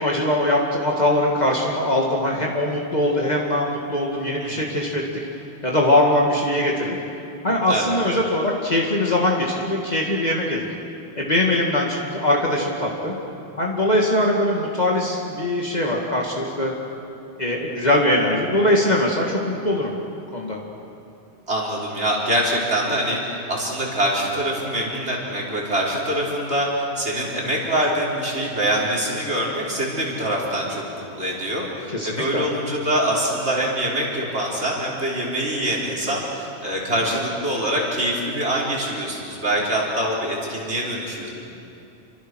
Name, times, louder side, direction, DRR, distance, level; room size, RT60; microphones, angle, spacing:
voice 1, 0.0-5.0 5.6-7.0 7.4-10.7 11.2-13.1 13.6-16.7 17.4-20.0 20.3-20.6 31.9-32.4, left 1 dB, 40° left, -2 dB, 2.4 m, -21 dB
voice 2, 21.5-41.3, right 1 dB, 75° right, -4 dB, 5.4 m, -24 dB
29.5 x 25.0 x 6.4 m, 2.6 s
omnidirectional pair, 1.1 m